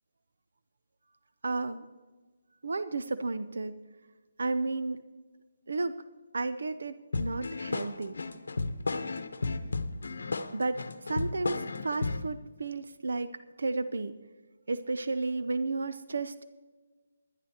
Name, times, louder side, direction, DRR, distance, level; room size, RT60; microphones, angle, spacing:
voice 1, 1.4-1.8 2.6-3.8 4.4-5.0 5.7-6.0 6.3-8.2 10.5-10.8 11.1-13.3 13.6-14.2 14.7-16.5, right 3 dB, 80° right, 11 dB, 0.6 m, -32 dB
sound 1, 7.1-12.3, left 3 dB, 75° left, 0.8 m, -33 dB
19.5 x 12.0 x 2.9 m, 1.3 s
hypercardioid pair, 160°, 0 cm